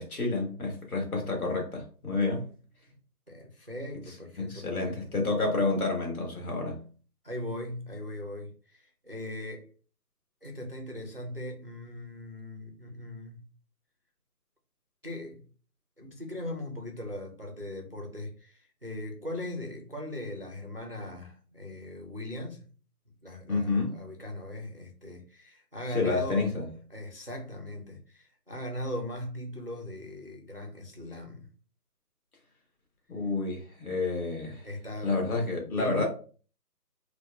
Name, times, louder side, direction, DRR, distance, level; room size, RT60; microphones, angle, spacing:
voice 1, 0.0-2.5 4.4-6.8 23.5-24.0 25.9-26.7 33.1-34.7 35.0-36.1, left 3 dB, 60° left, 1.3 m, -29 dB
voice 2, 3.3-5.0 7.2-9.7 10.4-13.4 15.0-15.5 16.0-22.7 23.2-26.5 26.9-31.5 34.6-36.1, left 1 dB, 40° right, 0.4 m, -39 dB
4.0 x 2.3 x 2.2 m
figure-of-eight pair, 170°, 48 cm